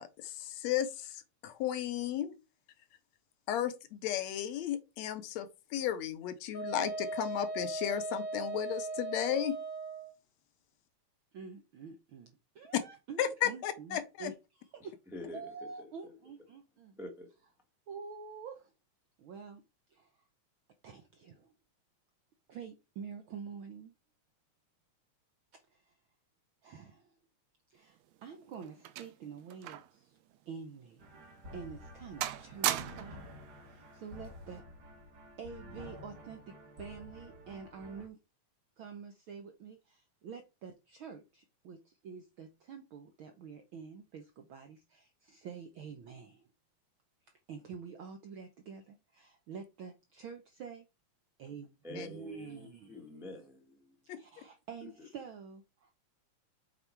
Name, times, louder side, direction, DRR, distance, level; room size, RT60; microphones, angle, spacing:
voice 1, 0.0-2.3 3.5-9.6 13.2-14.3 52.0-52.1 54.1-54.2, left 11 dB, 75° left, 1.9 m, -34 dB
Wind instrument woodwind instrument, 6.5-10.1, right 3 dB, 35° left, 0.7 m, -38 dB
voice 2, 11.3-15.0 15.3-17.0 17.9-18.7 19.2-19.6 19.9-20.2 20.8-21.5 22.5-23.9 25.5-26.0 26.6-27.1 27.7-30.2 30.5-33.4 33.7-34.6 35.4-38.2 38.8-46.5 47.5-50.9 51.4-51.6 51.9-52.8 54.2-55.9, right 6 dB, 70° right, 1.2 m, -47 dB
voice 3, 14.8-16.3 17.0-17.3 51.8-54.0 54.8-55.1, left 2 dB, 5° right, 0.4 m, -47 dB
sound 1, 27.9-30.0 30.3-30.5 31.1-31.2 31.7-33.3 34.2-34.5, right 13 dB, 90° right, 2.1 m, -37 dB
sound 2, 31.0-38.1, left 1 dB, 45° right, 1.5 m, -51 dB
7.5 x 4.1 x 4.6 m
omnidirectional pair, 3.4 m